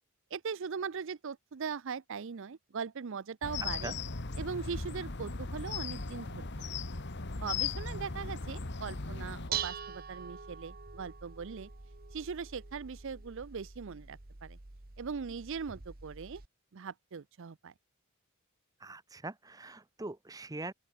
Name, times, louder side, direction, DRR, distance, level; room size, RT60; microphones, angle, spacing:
voice 1, 0.3-3.9 4.4-6.5 7.4-11.7 12.1-14.6 15.0-16.4 16.7-17.7, right 6 dB, 60° right, 0.5 m, -40 dB
sound 1, 3.4-9.5, left 4 dB, 50° left, 1.6 m, -37 dB
voice 2, 7.9-8.2 18.8-20.7, right 2 dB, 15° right, 0.7 m, -43 dB
Dishes pots and pans, 9.1-16.5, right 7 dB, 45° right, 1.4 m, -44 dB
open air
head